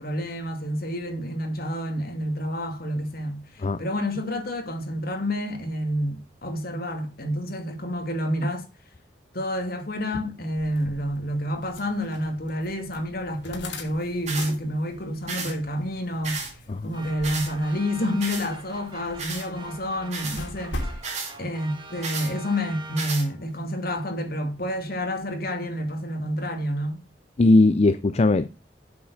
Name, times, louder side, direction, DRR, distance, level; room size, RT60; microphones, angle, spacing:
voice 1, 0.0-8.6 9.3-16.5 16.8-20.9 21.4-27.0, equal, 55° left, 2.5 m, -29 dB
sound 1, 10.6-21.0, left 1 dB, 85° left, 2.9 m, -41 dB
sound 2, 14.3-14.5 15.3-15.5 16.2-16.5 17.2-17.5 18.2-18.5 19.2-19.5 20.1-20.4 21.0-21.3 22.0-22.3 23.0-23.3, right 4 dB, 40° right, 3.7 m, -32 dB
sound 3, 16.9-23.5, right 3 dB, 25° right, 1.4 m, -44 dB
voice 2, 27.4-28.5, left 2 dB, 35° left, 0.4 m, -19 dB
8.4 x 7.3 x 6.1 m
head